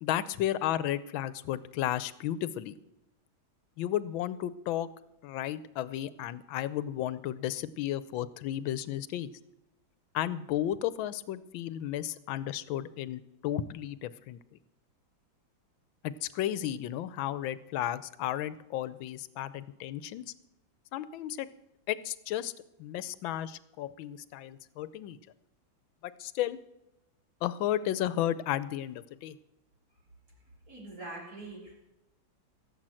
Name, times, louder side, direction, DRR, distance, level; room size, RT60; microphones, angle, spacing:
voice 1, 0.0-2.7 3.8-4.9 5.2-9.3 10.1-14.4 16.0-20.2 20.9-21.5 21.9-22.5 22.8-25.2 26.0-26.6 27.4-29.3, left 12 dB, 80° left, 16 dB, 1.4 m, -33 dB
voice 2, 30.7-31.8, right 2 dB, 45° right, -5 dB, 4.1 m, -43 dB
16.0 x 7.7 x 7.6 m, 0.89 s
omnidirectional pair, 2.2 m